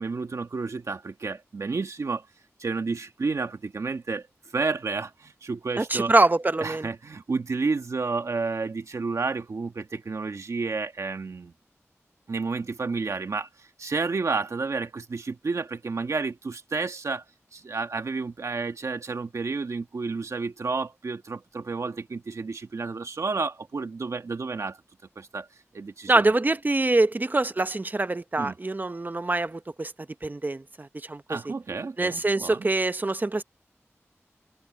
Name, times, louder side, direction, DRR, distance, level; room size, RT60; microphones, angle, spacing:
voice 1, 0.0-2.3 2.6-4.3 4.5-6.1 6.6-11.5 12.3-17.2 17.5-24.8 25.1-25.5 25.7-26.3 28.4-28.5 31.3-32.7, right 4 dB, 80° right, 1.6 m, -31 dB
voice 2, 5.8-6.9 26.1-29.9 30.2-31.4 32.0-33.4, right 2 dB, 35° right, 0.8 m, -24 dB
wide cardioid pair, 70°, 5 cm